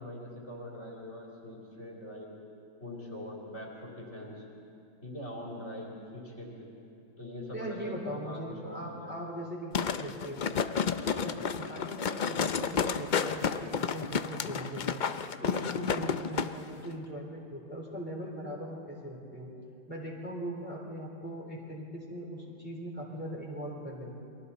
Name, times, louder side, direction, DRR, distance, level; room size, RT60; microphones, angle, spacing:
voice 1, 0.0-2.4 2.8-4.4 5.0-6.5 7.2-9.1, left 1 dB, 45° left, -3 dB, 3.3 m, -42 dB
voice 2, 7.5-10.5 11.0-15.0 15.4-19.5 19.9-24.2, equal, 5° right, -4 dB, 3.9 m, -40 dB
sound 1, 9.7-16.5 16.8-16.9, left 6 dB, 80° left, 0.4 m, -31 dB
29.5 x 23.0 x 4.2 m, 2.7 s
omnidirectional pair, 1.7 m